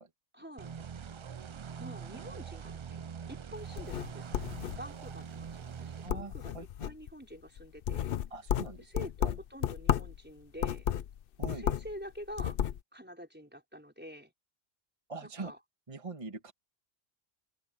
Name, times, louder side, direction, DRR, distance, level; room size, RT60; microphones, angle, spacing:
voice 1, 0.3-0.7 1.8-3.0 3.3-8.1 8.8-10.9 11.5-12.6 12.9-14.3 15.2-15.6, equal, 10° right, 5.2 m, -47 dB
sound 1, 0.6-6.1, right 7 dB, 50° right, 0.3 m, -43 dB
sound 2, 3.6-5.1 5.5-5.8 6.1-7.1 7.6-10.2 10.6-12.0 12.2-12.8, left 10 dB, 60° left, 0.7 m, -33 dB
voice 2, 6.0-6.9 8.3-9.3 11.4-11.7 15.1-15.5 15.9-16.5, right 3 dB, 30° right, 1.7 m, -43 dB
open air
omnidirectional pair, 1.1 m